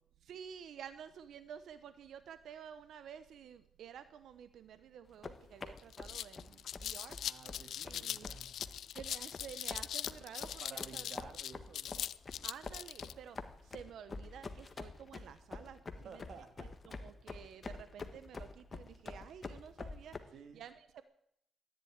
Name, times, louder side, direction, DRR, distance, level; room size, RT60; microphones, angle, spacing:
voice 1, 0.2-7.2 7.8-8.3 8.9-11.1 12.4-13.4 13.6-16.3 16.6-21.0, right 8 dB, 80° right, 12 dB, 0.9 m, -51 dB
sound 1, 5.1-20.2, left 3 dB, 30° left, 1.4 m, -47 dB
sound 2, 5.3-5.4 5.8-13.1, left 10 dB, 75° left, 0.5 m, -41 dB
voice 2, 7.0-8.6 10.6-12.1 15.9-17.0 20.3-20.6, right 5 dB, 60° right, 7 dB, 2.3 m, -54 dB
14.5 x 10.5 x 9.6 m, 0.73 s
cardioid pair, 135°, 0 cm